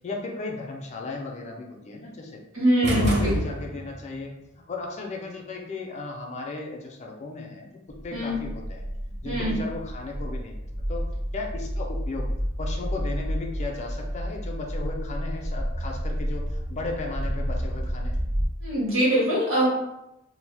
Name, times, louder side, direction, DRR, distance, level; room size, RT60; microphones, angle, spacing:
voice 1, 0.0-2.4 2.8-4.3 4.7-7.7 8.0-10.6 10.9-11.0 11.3-12.3 12.6-18.2, left 3 dB, 35° left, 1 dB, 0.4 m, -35 dB
voice 2, 2.5-3.3 8.1-8.3 9.2-9.5 18.6-19.7, right 1 dB, 70° right, -7 dB, 1.5 m, -23 dB
sound 1, 2.8-4.1, right 1 dB, 55° right, 0.5 m, -27 dB
sound 2, 7.9-18.5, equal, 85° right, 0.8 m, -30 dB
2.6 x 2.0 x 3.2 m, 0.87 s
head